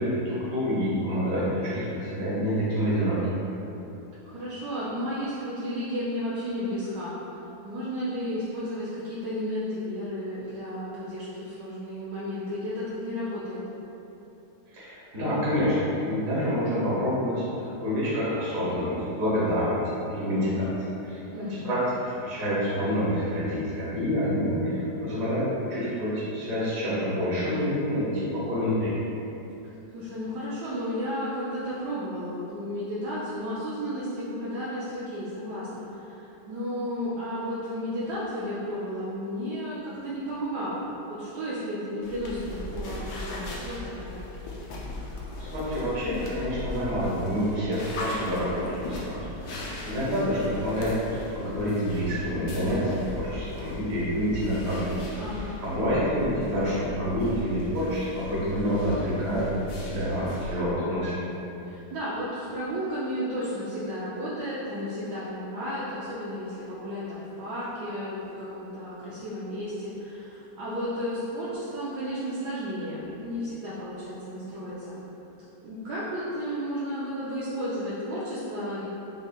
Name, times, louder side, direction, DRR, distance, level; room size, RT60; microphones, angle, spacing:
voice 1, 0.0-3.2 14.7-20.7 21.0-21.2 21.5-21.8 22.2-28.9 45.4-55.0 55.6-59.5 59.8-61.2, equal, 55° right, -9 dB, 1.5 m, -27 dB
voice 2, 4.2-13.6 21.3-21.8 29.9-44.1 55.2-55.6 61.6-75.0 75.6-78.9, equal, 75° right, -9 dB, 1.2 m, -33 dB
sound 1, 42.0-60.5, left 2 dB, 70° left, 1.1 m, -38 dB
5.4 x 3.1 x 2.3 m, 3.0 s
omnidirectional pair, 1.9 m